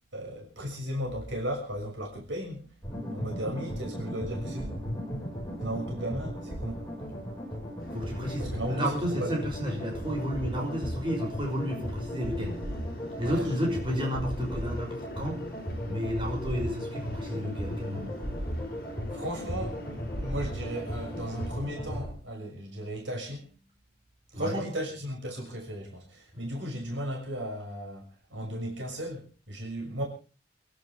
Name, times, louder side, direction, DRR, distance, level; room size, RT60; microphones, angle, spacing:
voice 1, 0.1-2.7 3.1-4.8 5.6-6.8 8.4-9.3 13.2-13.4 19.1-19.8 20.2-23.5 24.3-30.0, equal, 90° right, 6.4 m, -35 dB
sound 1, 2.8-22.1, equal, 15° left, 5.7 m, -36 dB
sound 2, 7.8-21.5, left 1 dB, 50° left, 5.9 m, -45 dB
voice 2, 7.9-12.6 13.2-15.4 15.9-18.1 24.3-24.6, equal, 25° right, 6.3 m, -31 dB
29.0 x 12.0 x 3.6 m
head